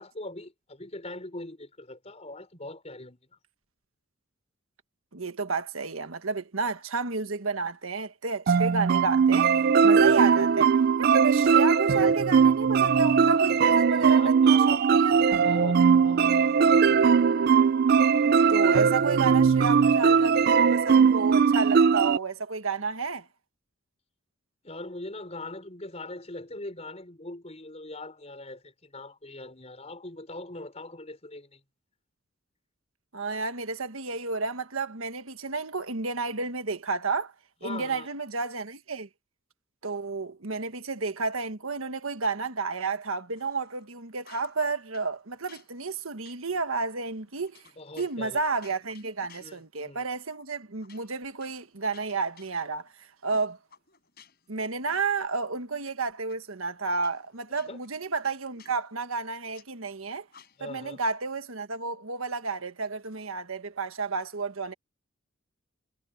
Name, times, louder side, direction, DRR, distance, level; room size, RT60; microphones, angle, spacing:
voice 1, 0.0-3.2 10.0-10.2 14.0-16.3 24.6-31.6 37.6-38.1 47.8-48.4 49.4-50.1 57.7-57.8 60.6-61.0, left 2 dB, 30° left, 4.7 m, -41 dB
voice 2, 5.1-9.5 9.8-15.4 18.5-23.3 33.1-37.3 37.6-39.1 39.8-47.6 48.0-52.9 53.2-53.6 54.5-60.2 60.6-64.7, right 4 dB, 75° right, 1.4 m, -31 dB
sound 1, 8.5-22.2, right 6 dB, 45° right, 0.3 m, -20 dB
sound 2, 43.3-43.9 44.2-45.1 45.5-49.9 50.3-50.4 50.8-52.9 53.3-54.6 54.9-55.9 56.3-56.4 56.9-59.7 60.3-60.8, left 7 dB, 45° left, 6.8 m, -57 dB
head